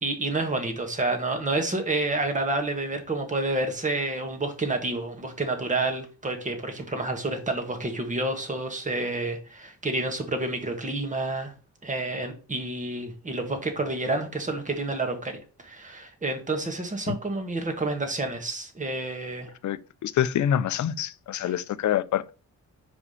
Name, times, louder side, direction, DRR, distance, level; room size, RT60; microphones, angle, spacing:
voice 1, 0.0-11.5 11.8-19.5 21.4-21.5, right 2 dB, 25° right, 1.6 m, -29 dB
voice 2, 19.6-22.3, left 10 dB, 70° left, 0.6 m, -26 dB
5.5 x 5.0 x 5.0 m
wide cardioid pair, 130°, 31 cm